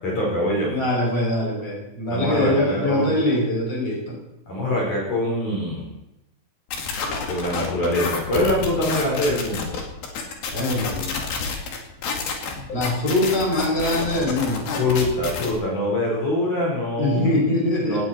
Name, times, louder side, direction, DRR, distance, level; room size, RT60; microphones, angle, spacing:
voice 1, 0.0-0.7 2.1-3.1 4.5-5.9 7.3-9.8 14.8-17.3 17.8-18.0, left 1 dB, 50° left, -4 dB, 6.1 m, -24 dB
voice 2, 0.7-4.2 10.5-11.4 12.7-14.8 17.0-18.0, left 1 dB, 15° left, -3 dB, 6.7 m, -23 dB
sound 1, 6.7-15.5, left 5 dB, 70° left, 4.1 m, -29 dB
18.5 x 16.0 x 4.5 m, 0.90 s
omnidirectional pair, 4.5 m